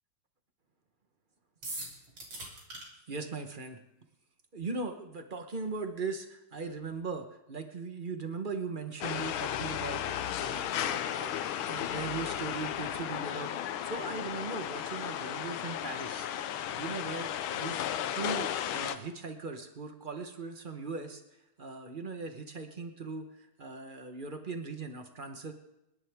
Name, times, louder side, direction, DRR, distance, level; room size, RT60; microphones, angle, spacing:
sound 1, 1.6-2.8, right 2 dB, 60° right, 4.1 m, -40 dB
voice 1, 3.1-3.8 4.5-11.3 11.7-21.2 21.6-25.5, right 4 dB, 35° right, 6 dB, 0.8 m, -39 dB
sound 2, 9.0-19.0, left 10 dB, 75° left, 1.5 m, -34 dB
29.5 x 11.0 x 3.6 m, 0.89 s
omnidirectional pair, 2.4 m